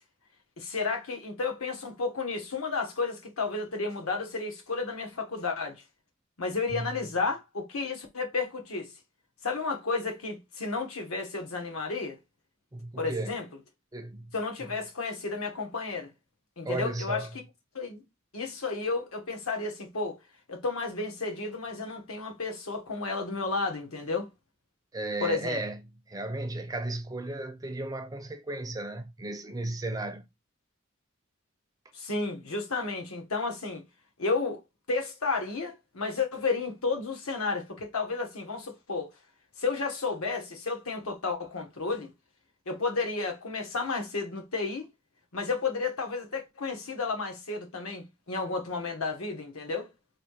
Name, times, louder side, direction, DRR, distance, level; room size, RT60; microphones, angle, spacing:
voice 1, 0.6-5.8 6.4-8.9 9.4-12.2 13.0-13.4 14.3-16.1 16.6-17.2 17.7-18.0 18.3-20.2 20.5-24.3 25.2-25.6 31.9-33.8 34.2-34.6 34.9-39.1 39.6-42.1 42.7-44.9 45.3-49.9, left 4 dB, 85° left, 1.2 m, -32 dB
voice 2, 12.7-13.3 13.9-14.3 14.7-14.8 16.6-17.4 24.9-25.8 26.1-30.3, right 2 dB, 15° right, 0.4 m, -34 dB
3.2 x 2.7 x 4.5 m
head